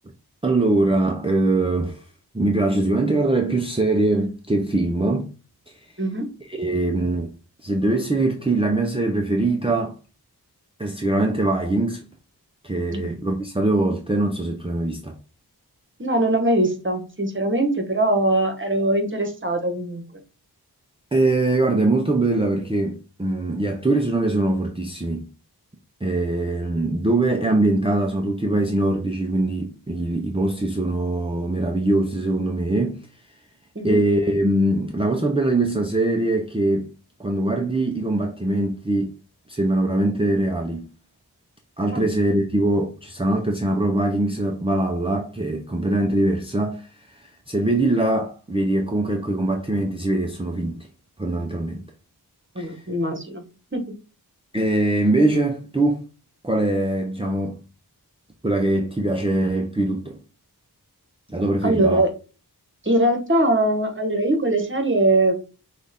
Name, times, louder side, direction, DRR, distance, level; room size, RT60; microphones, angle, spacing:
voice 1, 0.4-2.0 2.3-5.4 6.5-7.3 7.6-10.0 10.8-12.1 12.6-15.2 21.1-25.3 26.0-33.1 33.8-36.9 37.2-39.2 39.5-40.9 41.8-50.9 51.2-51.8 52.6-52.8 54.5-56.0 56.4-57.6 58.4-60.2 61.3-62.0, right 2 dB, 15° right, 0.6 m, -22 dB
voice 2, 16.0-20.0 33.7-34.0 41.9-42.1 52.5-53.4 53.7-53.9 61.6-62.1 62.8-65.4, right 1 dB, 30° right, 1.2 m, -21 dB
6.1 x 2.5 x 3.5 m
wide cardioid pair, 70°, 39 cm